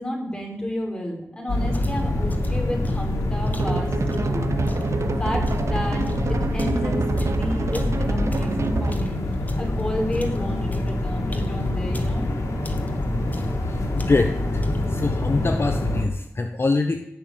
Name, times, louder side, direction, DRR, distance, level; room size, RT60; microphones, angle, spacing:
voice 1, 0.0-3.9 4.2-4.5 5.0-9.2 9.6-12.3, equal, 15° left, 0 dB, 5.9 m, -31 dB
sound 1, 1.5-16.1, left 1 dB, 90° left, 2.4 m, -26 dB
sound 2, 1.7-5.0 5.5-9.8 10.1-12.3 12.6-13.1 13.3-13.7 14.0-14.4 14.6-15.0, left 1 dB, 35° left, 2.1 m, -34 dB
sound 3, 3.6-9.1, right 4 dB, 65° right, 1.1 m, -27 dB
voice 2, 13.7-14.6 14.9-17.1, left 3 dB, 50° left, 6 dB, 1.0 m, -24 dB
17.0 x 6.9 x 9.4 m, 0.80 s
cardioid pair, 55°, 5 cm